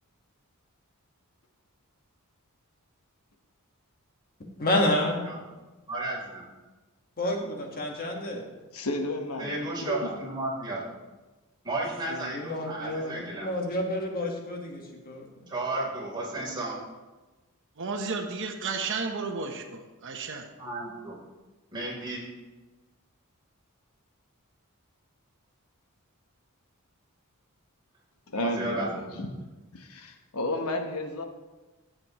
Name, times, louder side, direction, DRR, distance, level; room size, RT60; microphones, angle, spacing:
voice 1, 4.6-5.3 7.2-8.5 12.1-15.4, left 1 dB, 40° left, 1 dB, 1.5 m, -29 dB
voice 2, 5.9-6.5 9.4-10.9 11.6-13.5 15.5-16.8 20.6-21.2 21.7-22.4 28.3-29.2, right 2 dB, 20° right, -6 dB, 3.4 m, -33 dB
voice 3, 8.7-10.2 28.3-29.3 29.7-31.2, left 1 dB, 85° left, 5 dB, 1.1 m, -32 dB
voice 4, 17.8-20.5, right 4 dB, 60° right, 5 dB, 0.9 m, -33 dB
14.5 x 7.8 x 3.0 m, 1.2 s
head